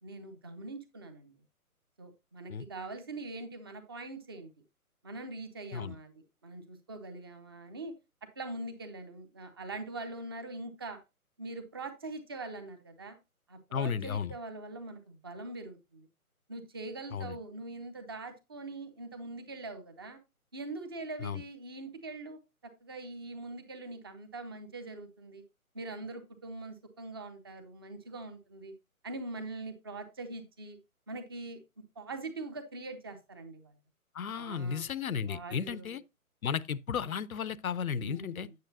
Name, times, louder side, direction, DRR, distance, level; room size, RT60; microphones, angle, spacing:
voice 1, 0.0-1.3 2.0-4.5 5.0-7.9 8.4-11.0 11.4-13.2 13.5-16.1 16.5-20.2 20.5-22.4 22.8-25.4 25.7-28.7 29.0-30.8 31.1-31.6 32.0-33.7 34.4-34.9 35.2-36.0 38.0-38.5, right 2 dB, 15° right, 0.6 m, -43 dB
voice 2, 13.7-14.3 17.1-17.4 21.2-21.4 34.1-36.0 36.4-38.5, left 7 dB, 70° left, 0.7 m, -34 dB
9.3 x 6.7 x 2.7 m
figure-of-eight pair, 140°, 44 cm